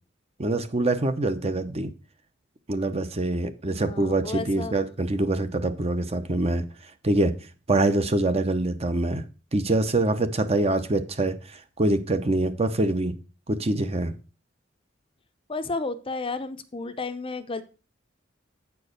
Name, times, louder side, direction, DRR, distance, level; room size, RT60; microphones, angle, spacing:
voice 1, 0.4-1.9 2.7-6.6 7.0-7.3 7.7-9.2 9.5-11.4 11.8-13.1 13.5-14.1, right 2 dB, 35° right, 10 dB, 0.8 m, -24 dB
voice 2, 3.7-4.7 15.5-17.6, left 3 dB, 30° left, 11 dB, 0.6 m, -32 dB
8.6 x 4.7 x 6.4 m, 0.34 s
head